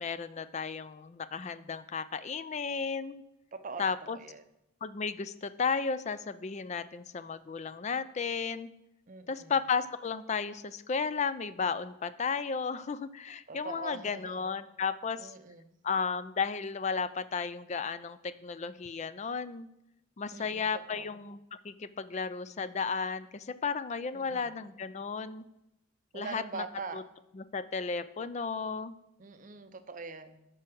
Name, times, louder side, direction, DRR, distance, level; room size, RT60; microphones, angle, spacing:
voice 1, 0.0-3.2 3.8-4.2 4.8-8.7 9.3-15.3 15.8-19.7 20.2-21.4 21.6-25.4 26.1-26.6 26.9-27.0 27.3-29.0, left 5 dB, 35° left, 14 dB, 0.4 m, -34 dB
voice 2, 3.5-4.4 9.1-9.5 13.5-14.4 15.2-15.7 20.3-21.1 24.1-24.5 26.1-27.0 29.2-30.5, right 4 dB, 40° right, 9 dB, 0.6 m, -43 dB
12.5 x 4.6 x 6.1 m, 0.90 s
head